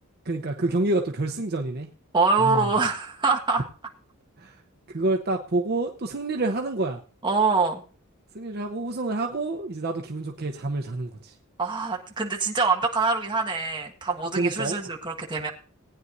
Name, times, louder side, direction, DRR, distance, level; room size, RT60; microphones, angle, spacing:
voice 1, 0.2-1.9 2.4-2.7 4.4-4.5 4.9-7.0 8.3-11.3 14.4-14.8, right 2 dB, 50° right, 3 dB, 0.8 m, -28 dB
voice 2, 2.1-3.6 7.2-7.8 11.6-15.5, right 4 dB, 20° right, 0 dB, 1.6 m, -24 dB
18.5 x 9.6 x 2.7 m, 0.38 s
head